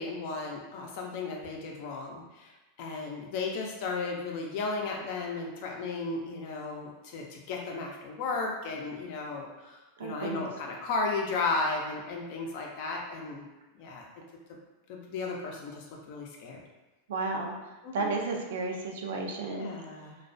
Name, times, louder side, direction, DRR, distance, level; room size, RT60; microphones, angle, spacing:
voice 1, 0.0-2.5 2.8-13.4 13.8-14.0 14.9-16.6 17.8-18.1 19.5-20.2, left 3 dB, 60° left, 0 dB, 0.5 m, -34 dB
voice 2, 10.0-10.5 17.1-17.5 17.9-19.7, right 3 dB, 80° right, 2 dB, 0.4 m, -32 dB
2.3 x 2.1 x 2.5 m, 1.1 s
hypercardioid pair, 115°, 0 cm